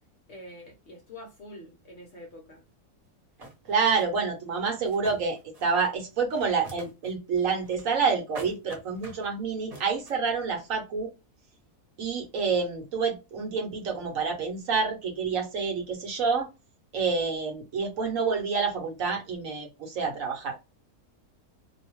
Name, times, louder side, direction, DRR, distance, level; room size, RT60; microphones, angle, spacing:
voice 1, 0.3-2.6, left 1 dB, 55° left, 0.8 m, -46 dB
sound 1, 3.0-3.1 3.4-4.0 4.7-5.8 6.1-7.1 7.4-8.1 8.3-9.3 9.7-10.2, right 1 dB, 30° right, 0.9 m, -45 dB
voice 2, 3.7-11.1 12.0-16.5 16.9-20.6, right 5 dB, 65° right, 1.1 m, -28 dB
2.7 x 2.1 x 3.0 m
omnidirectional pair, 1.7 m